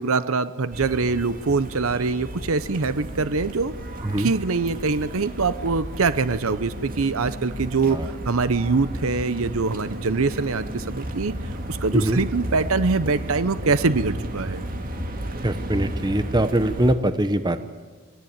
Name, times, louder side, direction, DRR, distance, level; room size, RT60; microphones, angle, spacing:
voice 1, 0.0-3.7 4.2-11.3 11.7-14.6, right 4 dB, 70° right, 14 dB, 0.8 m, -24 dB
sound 1, 0.7-16.9, right 1 dB, 40° right, 2.1 m, -33 dB
voice 2, 15.4-17.6, right 1 dB, 20° right, 11 dB, 0.8 m, -22 dB
26.0 x 20.0 x 8.8 m, 1.4 s
head